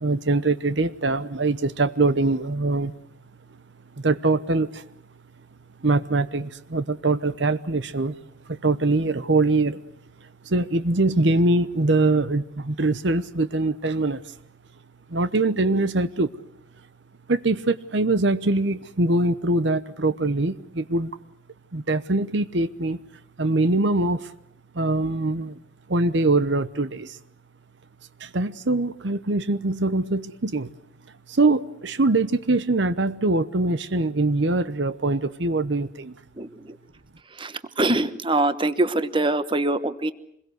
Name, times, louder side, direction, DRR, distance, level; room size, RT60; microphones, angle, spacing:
voice 1, 0.0-2.9 4.0-4.8 5.8-8.1 8.5-9.8 10.4-14.2 15.1-16.3 17.3-21.1 21.7-23.0 23.4-24.3 24.7-25.6 25.9-27.2 28.2-30.7 31.3-36.1, right 2 dB, 60° right, 13 dB, 0.9 m, -23 dB
voice 2, 36.3-36.8 37.3-40.1, right 2 dB, 25° right, 12 dB, 1.1 m, -24 dB
26.5 x 22.0 x 8.0 m, 0.73 s
head